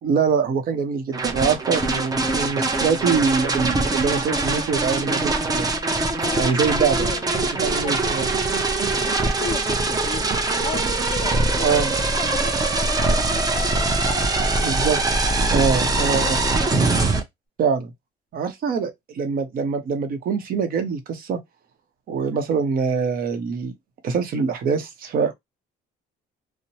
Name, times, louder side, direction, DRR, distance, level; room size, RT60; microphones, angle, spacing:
voice 1, 0.0-5.7 6.4-7.0 7.4-8.3 11.6-11.9 14.6-15.0 15.5-16.4 17.6-17.9 18.3-21.4 22.1-23.7 24.0-25.3, right 6 dB, 60° right, 0.9 m, -24 dB
sound 1, 1.1-17.2, right 3 dB, 20° right, 0.7 m, -22 dB
voice 2, 6.2-8.2 8.9-14.9 15.3-15.5 15.9-17.1, left 6 dB, 30° left, 0.5 m, -36 dB
2.9 x 2.1 x 2.7 m
cardioid pair, 110°, 17 cm